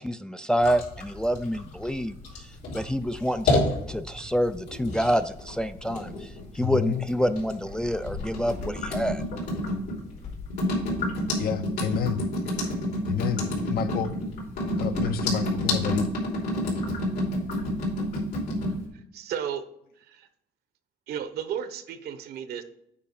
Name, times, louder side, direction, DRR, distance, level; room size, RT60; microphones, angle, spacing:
voice 1, 0.0-2.2 2.7-6.3 6.5-9.2, equal, 5° left, 9 dB, 0.3 m, -27 dB
sound 1, 0.6-18.8, left 1 dB, 85° left, 3.3 m, -29 dB
voice 2, 6.6-7.1 11.4-12.2 13.0-14.2 14.8-16.1, left 8 dB, 65° left, 11 dB, 0.7 m, -29 dB
voice 3, 18.9-19.7 20.0-20.3 21.1-22.6, right 8 dB, 70° right, 11 dB, 0.9 m, -34 dB
8.7 x 4.6 x 4.2 m, 0.76 s
cardioid pair, 110°, 17 cm